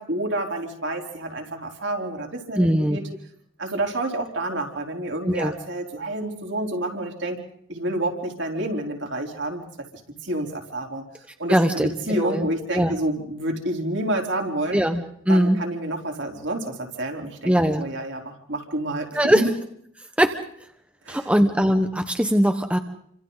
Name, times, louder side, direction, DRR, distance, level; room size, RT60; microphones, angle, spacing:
voice 1, 0.0-3.0 3.6-7.4 7.7-9.6 10.2-11.0 11.4-14.8 15.3-19.5 21.1-21.3, right 1 dB, 65° right, 2 dB, 4.1 m, -29 dB
voice 2, 2.6-3.0 5.3-5.5 11.5-12.9 14.7-15.6 17.4-17.9 19.1-19.4 20.2-20.4 21.1-22.8, equal, 5° right, 6 dB, 1.1 m, -21 dB
29.5 x 26.0 x 4.1 m, 0.69 s
head